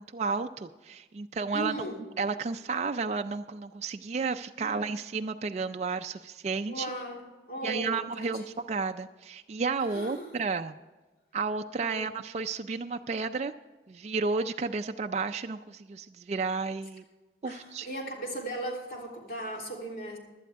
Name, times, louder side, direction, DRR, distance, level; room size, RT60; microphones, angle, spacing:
voice 1, 0.0-1.7 2.2-6.9 7.6-10.8 11.3-13.5 13.9-17.0 17.4-17.9, right 4 dB, 40° right, 6 dB, 0.3 m, -32 dB
voice 2, 1.5-2.0 4.6-4.9 6.7-8.5 9.9-10.4 11.8-12.2 17.4-20.2, right 1 dB, 55° left, -1 dB, 3.4 m, -38 dB
17.0 x 11.5 x 3.5 m, 1.2 s
head